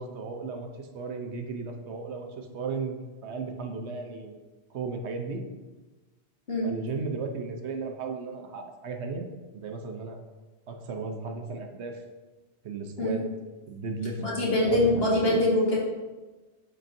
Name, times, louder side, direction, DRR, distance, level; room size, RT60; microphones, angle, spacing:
voice 1, 0.0-4.4 4.7-5.4 6.6-10.2 10.7-12.0 12.6-13.2 13.7-14.2 14.6-15.3, right 4 dB, 75° right, 4 dB, 1.0 m, -35 dB
voice 2, 14.2-15.8, left 1 dB, 60° left, -4 dB, 1.8 m, -24 dB
11.5 x 4.4 x 2.6 m, 1.2 s
omnidirectional pair, 1.2 m